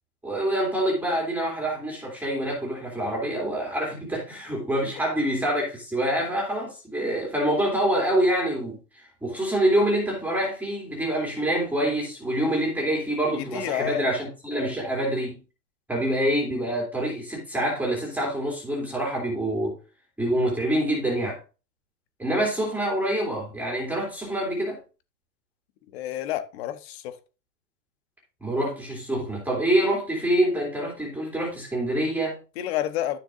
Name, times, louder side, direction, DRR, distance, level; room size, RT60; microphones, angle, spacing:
voice 1, 0.2-15.4 15.9-19.8 20.2-21.4 22.2-24.8 28.4-32.4, right 1 dB, 5° right, 3.0 m, -26 dB
voice 2, 13.3-14.1 25.9-27.2 32.6-33.2, left 12 dB, 40° left, 1.1 m, -30 dB
12.5 x 6.8 x 2.6 m
hypercardioid pair, 145°, 48 cm